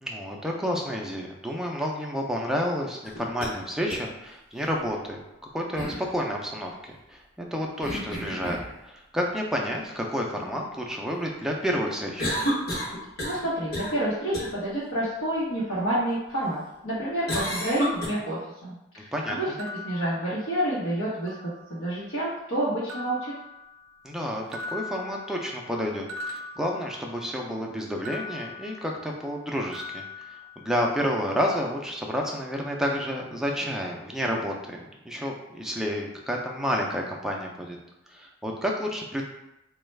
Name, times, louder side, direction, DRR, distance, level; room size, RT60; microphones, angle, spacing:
voice 1, 0.0-5.2 5.5-8.6 8.8-12.3 19.0-19.4 24.0-30.3 30.6-37.8 38.1-39.2, equal, ahead, -1 dB, 0.3 m, -30 dB
sound 1, 3.0-3.5 3.9-4.0 5.8-6.1 7.8-8.7 12.2-13.5 13.7-14.0 14.3-14.5 17.3-18.1, equal, 50° left, 0.9 m, -30 dB
voice 2, 13.3-19.5 19.8-21.4 21.7-23.3, right 1 dB, 90° left, -9 dB, 1.0 m, -29 dB
sound 2, 19.6-20.9 21.3-22.0 22.9-24.2 24.5-27.4 28.0-29.4 29.7-31.1, left 3 dB, 85° right, 0.4 m, -41 dB
4.2 x 2.3 x 3.2 m, 0.92 s
head